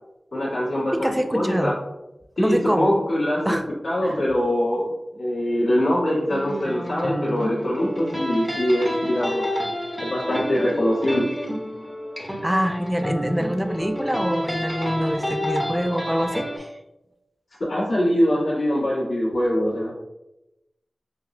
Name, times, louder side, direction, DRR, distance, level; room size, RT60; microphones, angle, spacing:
voice 1, 0.3-1.7 2.4-3.4 3.8-9.5 10.0-11.3 17.6-19.9, equal, 70° left, -8 dB, 1.4 m, -23 dB
voice 2, 0.9-1.7 2.4-2.9 3.5-3.6 4.0-4.2 12.4-16.7, equal, 10° right, 7 dB, 0.3 m, -25 dB
sound 1, 6.3-16.6, equal, 10° left, 0.7 m, -29 dB
5.5 x 2.1 x 2.4 m, 0.93 s
wide cardioid pair, 80°, 0 cm